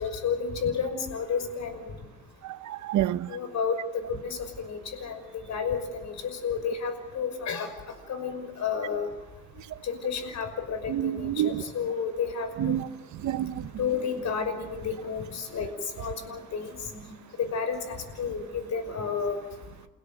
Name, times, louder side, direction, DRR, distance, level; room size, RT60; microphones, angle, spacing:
voice 1, 0.0-1.9 3.2-9.1 9.8-12.8 13.8-15.7 16.0-19.4, left 6 dB, 65° left, 5.8 m, -31 dB
voice 2, 2.7-3.3 10.9-11.6 12.6-12.8 13.2-13.7, right 12 dB, 70° right, 1.0 m, -27 dB
30.0 x 17.0 x 7.8 m
cardioid pair, 90°, 30 cm